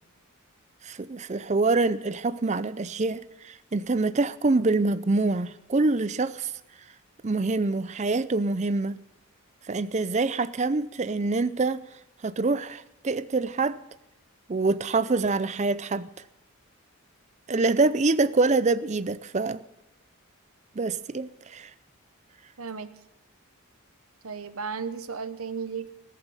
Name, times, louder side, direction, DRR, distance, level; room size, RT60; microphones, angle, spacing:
voice 1, 0.8-6.5 7.2-9.0 9.7-11.8 12.2-13.8 14.5-16.1 17.5-19.6 20.8-21.7, right 3 dB, 30° right, 0.5 m, -25 dB
voice 2, 22.6-22.9 24.2-25.9, right 5 dB, 75° right, 0.9 m, -34 dB
14.5 x 14.5 x 5.6 m
head